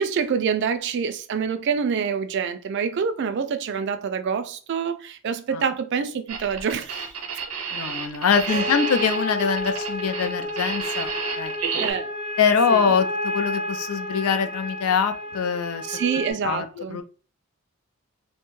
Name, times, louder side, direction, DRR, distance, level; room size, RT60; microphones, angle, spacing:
voice 1, 0.0-7.1 8.5-8.7 11.8-12.1 12.7-12.8 15.9-17.0, right 6 dB, 50° right, 0.3 m, -26 dB
sound 1, 6.3-11.9, right 6 dB, 75° right, 0.7 m, -30 dB
voice 2, 7.7-11.1 11.4-11.5 12.4-15.9 16.4-17.0, left 6 dB, 75° left, 0.4 m, -23 dB
sound 2, 8.5-16.3, left 1 dB, 20° left, 0.6 m, -31 dB
2.5 x 2.2 x 3.0 m
head